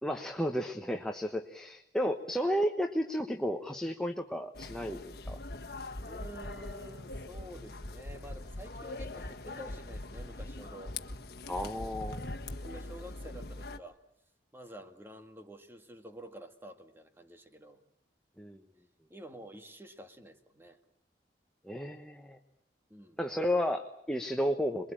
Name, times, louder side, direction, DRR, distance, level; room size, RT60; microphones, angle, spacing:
voice 1, 0.0-5.0 5.3-5.4 11.5-12.3 18.4-18.6 21.6-22.4 23.2-24.9, equal, 5° left, 4 dB, 1.1 m, -32 dB
sound 1, 4.5-13.8, left 3 dB, 60° left, 1.5 m, -44 dB
sound 2, 5.2-5.6 5.9-6.8 7.1-7.5 7.8-8.7 9.0-9.4 9.7-10.6 10.9-11.3 11.6-12.7, left 1 dB, 75° left, 1.9 m, -43 dB
voice 2, 6.0-11.0 12.4-14.0 14.5-17.8 19.1-20.8 22.9-23.2, right 1 dB, 15° right, 6 dB, 1.9 m, -49 dB
27.5 x 22.0 x 8.9 m, 0.70 s
head